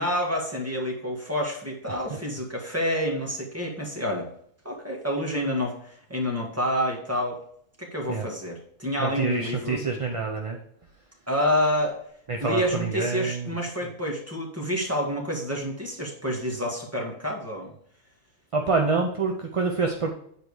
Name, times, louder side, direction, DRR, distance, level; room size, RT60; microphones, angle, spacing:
voice 1, 0.0-4.3 4.7-7.4 7.8-9.8 11.3-12.0 12.4-17.7, equal, 10° right, -1 dB, 1.7 m, -28 dB
voice 2, 9.0-10.6 12.3-13.6 18.5-20.1, right 4 dB, 35° right, 2 dB, 0.6 m, -27 dB
9.0 x 4.7 x 4.9 m, 0.67 s
omnidirectional pair, 1.3 m